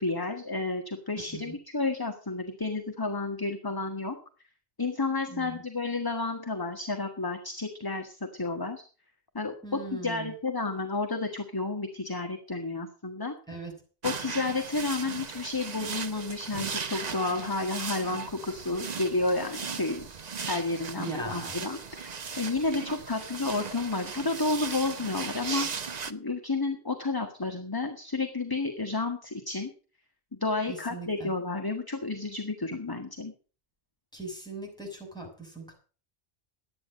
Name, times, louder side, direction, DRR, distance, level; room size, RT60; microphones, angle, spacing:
voice 1, 0.0-4.2 4.8-8.8 9.3-13.3 14.0-20.0 20.5-22.1 22.4-25.7 26.1-29.7 30.4-33.3, left 3 dB, 20° left, 5 dB, 1.4 m, -31 dB
voice 2, 5.3-5.6 9.6-10.3 13.5-13.7 21.0-21.6 30.7-31.3 34.1-35.7, right 2 dB, 5° left, 1 dB, 6.6 m, -39 dB
sound 1, 14.0-26.1, right 5 dB, 40° right, 0.9 m, -37 dB
12.0 x 9.6 x 6.4 m, 0.38 s
omnidirectional pair, 1.1 m